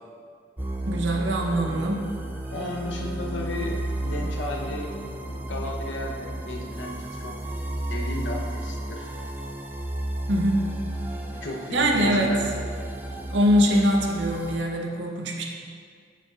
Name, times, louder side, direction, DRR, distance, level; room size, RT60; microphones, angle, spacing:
sound 1, 0.6-14.6, right 1 dB, 10° right, 0.4 m, -33 dB
voice 1, 0.9-2.1 10.3-10.7 11.7-12.3 13.3-15.4, equal, 85° right, 1 dB, 0.7 m, -23 dB
voice 2, 2.5-4.9 5.4-7.4 7.9-9.1 11.3-12.5, left 1 dB, 90° left, -1 dB, 0.8 m, -34 dB
7.0 x 5.8 x 2.4 m, 2.1 s
head